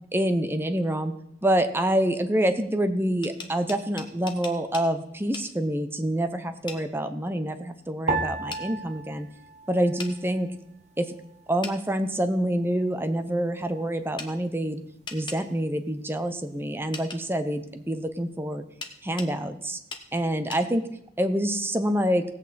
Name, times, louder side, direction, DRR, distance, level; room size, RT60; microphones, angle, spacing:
voice 1, 0.1-1.1 1.4-9.3 9.7-10.5 11.0-11.1 11.5-14.8 15.1-18.6 19.0-19.8 20.1-20.8 21.2-22.2, right 1 dB, 15° right, 8 dB, 0.7 m, -26 dB
sound 1, 3.0-4.9 5.3-5.5 6.7-6.8 8.5-8.6 10.0-10.1 11.6-11.8 14.2-14.3 15.1-15.4 16.9-17.2 18.8-19.3 19.9-20.1 20.5-20.6, left 4 dB, 25° left, 1.2 m, -38 dB
sound 2, 8.1-10.6 10.9-11.8 12.4-12.8, right 3 dB, 40° right, 1.0 m, -34 dB
18.0 x 8.2 x 4.2 m, 0.77 s
head